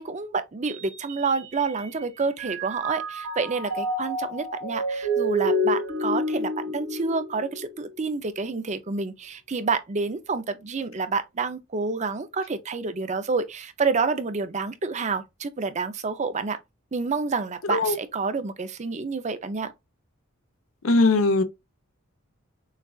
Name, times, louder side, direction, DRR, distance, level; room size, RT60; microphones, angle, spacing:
voice 1, 0.0-16.6 16.9-19.7, right 4 dB, 35° right, 0.5 m, -28 dB
Mallet percussion, 0.7-2.0 2.4-7.8, equal, 90° right, 2.1 m, -29 dB
voice 2, 20.8-21.4, left 3 dB, 70° left, 0.8 m, -20 dB
6.4 x 2.4 x 2.4 m
head